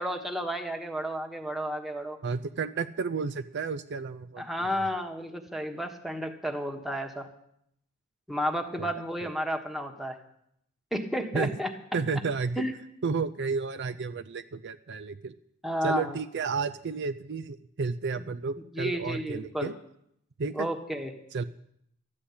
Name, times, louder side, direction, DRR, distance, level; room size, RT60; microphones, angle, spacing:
voice 1, 0.0-2.2 4.4-7.3 8.3-10.2 10.9-11.7 12.6-12.8 15.6-16.2 18.7-19.7 20.5-21.1, equal, ahead, 4 dB, 1.4 m, -32 dB
voice 2, 2.2-4.8 8.8-8.9 9.2-9.3 11.3-11.5 11.9-12.6 13.0-15.3 15.8-19.7 20.4-20.7 21.3-21.4, right 5 dB, 60° right, 11 dB, 0.5 m, -32 dB
13.0 x 9.8 x 8.6 m, 0.73 s
head